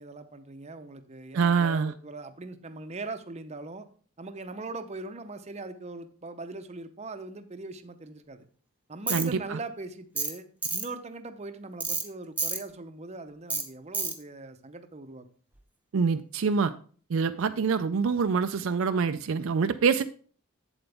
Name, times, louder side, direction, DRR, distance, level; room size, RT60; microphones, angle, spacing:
voice 1, 0.0-3.9 4.2-8.5 8.9-15.3, right 3 dB, 30° right, 9 dB, 0.7 m, -41 dB
voice 2, 1.3-1.9 9.1-9.6 15.9-16.7 17.1-20.0, right 5 dB, 65° right, 9 dB, 0.4 m, -25 dB
Tools, 9.1-9.3 10.2-10.3 10.6-10.9 11.8-12.0 12.4-12.6 13.5-13.6 13.9-14.1, right 3 dB, 5° right, 0.9 m, -29 dB
7.9 x 7.8 x 3.4 m, 0.43 s
head